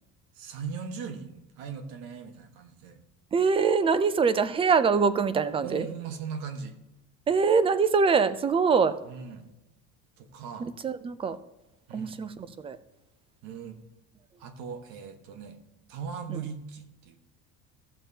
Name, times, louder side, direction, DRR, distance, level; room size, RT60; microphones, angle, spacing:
voice 1, 0.3-3.0 5.6-6.8 9.1-9.5 10.2-10.7 11.9-12.2 13.4-13.8 14.4-15.6 15.9-17.3, right 6 dB, 75° right, 6 dB, 1.5 m, -39 dB
voice 2, 3.3-5.9 7.3-9.0 10.6-11.4 11.9-12.8 16.3-16.4, right 5 dB, 15° right, 14 dB, 0.4 m, -24 dB
14.0 x 7.2 x 2.8 m, 0.99 s
cardioid pair, 150°, 35 cm